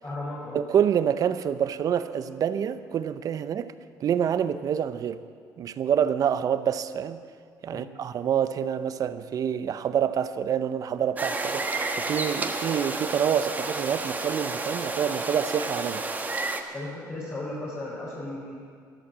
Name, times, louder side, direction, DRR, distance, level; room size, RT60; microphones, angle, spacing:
voice 1, 0.0-0.6 7.7-7.9 16.7-18.5, left 2 dB, 30° left, 3.6 m, -35 dB
voice 2, 0.5-3.7 4.0-5.2 5.6-7.2 7.6-16.0, right 8 dB, 55° right, 0.7 m, -27 dB
sound 1, 11.2-16.6, right 3 dB, 20° right, 1.3 m, -31 dB
13.0 x 12.0 x 7.4 m
cardioid pair, 95°, 7 cm